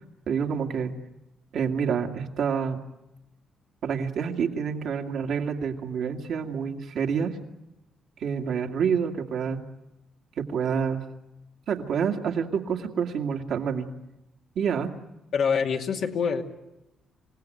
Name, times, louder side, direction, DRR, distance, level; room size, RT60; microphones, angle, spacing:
voice 1, 0.3-0.9 1.5-2.8 3.8-7.4 8.2-9.6 10.4-11.0 11.7-13.9 14.6-14.9, right 6 dB, 70° right, 3 dB, 2.2 m, -28 dB
voice 2, 15.3-16.4, left 6 dB, 70° left, 2 dB, 2.4 m, -25 dB
27.5 x 17.0 x 9.2 m, 0.95 s
cardioid pair, 90°, 0 cm